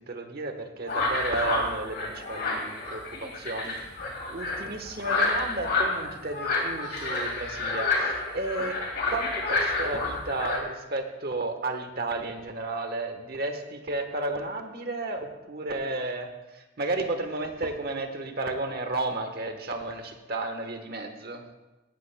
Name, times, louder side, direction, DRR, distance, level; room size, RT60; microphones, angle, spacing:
voice 1, 0.1-4.0 4.3-8.8 9.1-21.4, right 2 dB, 55° right, 6 dB, 1.2 m, -33 dB
sound 1, 0.9-10.6, left 3 dB, 60° left, 2.5 m, -29 dB
16.5 x 13.5 x 2.2 m, 1.1 s
head